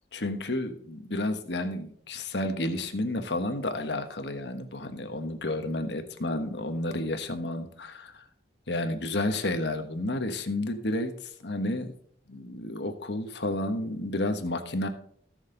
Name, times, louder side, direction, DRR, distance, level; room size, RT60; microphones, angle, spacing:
voice 1, 0.1-8.2 8.7-11.1 11.4-11.9 12.3-14.9, left 1 dB, 70° left, 7 dB, 1.3 m, -31 dB
17.0 x 6.5 x 4.0 m, 0.62 s
head